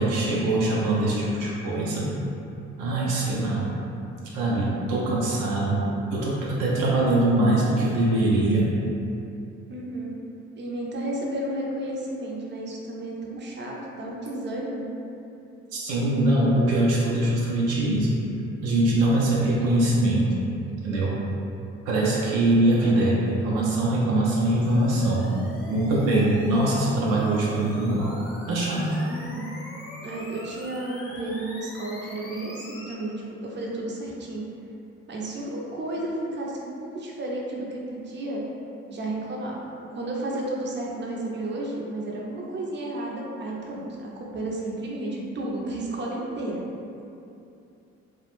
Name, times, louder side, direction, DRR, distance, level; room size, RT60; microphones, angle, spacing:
voice 1, 0.0-2.1 2.8-3.7 4.3-5.8 6.1-8.7 15.7-18.2 18.6-20.3 20.8-21.2 21.9-25.2 25.7-28.2 28.5-28.9, right 1 dB, 75° right, -5 dB, 0.5 m, -22 dB
voice 2, 9.7-10.2 10.6-14.9 29.1-29.5 30.0-34.5 35.1-38.4 38.9-39.6 39.9-46.6, right 1 dB, 35° right, -3 dB, 0.6 m, -32 dB
sound 1, 24.5-32.9, left 1 dB, 40° left, 0.7 m, -42 dB
2.3 x 2.1 x 3.0 m, 2.7 s
hypercardioid pair, 50°, 33 cm